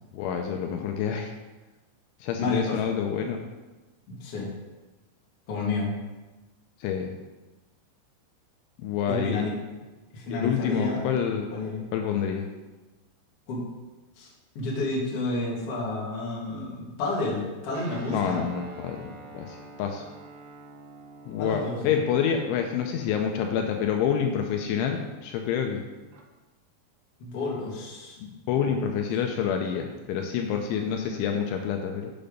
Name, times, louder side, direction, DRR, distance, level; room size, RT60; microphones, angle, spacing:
voice 1, 0.1-1.3 2.2-3.4 6.8-7.1 8.8-9.5 10.3-11.5 11.9-12.5 18.1-20.1 21.3-25.8 28.2-32.1, left 7 dB, 80° left, 3 dB, 2.9 m, -28 dB
voice 2, 2.4-2.8 4.1-4.5 5.5-5.9 9.1-9.5 10.1-11.0 11.5-11.8 13.5-13.6 14.2-18.4 21.4-21.8 27.2-28.2 28.5-28.9, left 2 dB, 45° left, -4 dB, 2.0 m, -30 dB
Guitar, 17.7-26.2, right 3 dB, 85° right, 3.4 m, -48 dB
7.8 x 7.0 x 5.2 m, 1.2 s
omnidirectional pair, 5.6 m